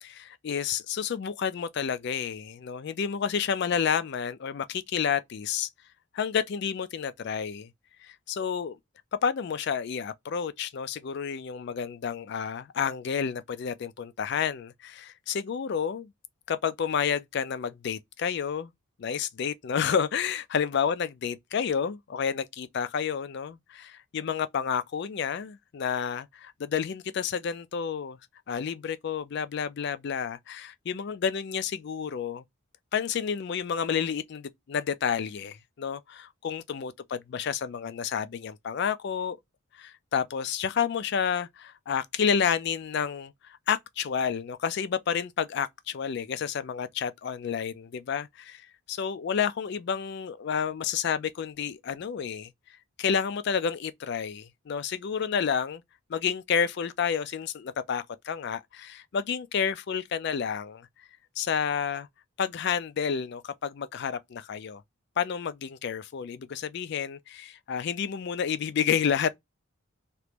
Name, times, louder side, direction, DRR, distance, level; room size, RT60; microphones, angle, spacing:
voice 1, 0.0-5.7 6.1-7.7 8.0-8.8 9.2-16.1 16.5-18.7 19.0-28.2 28.5-32.4 32.9-39.4 39.7-48.6 48.9-52.5 53.0-55.8 56.1-60.8 61.4-62.1 62.4-64.8 65.2-69.4, left 7 dB, 50° left, 0.3 m, -30 dB
2.9 x 2.5 x 3.3 m
head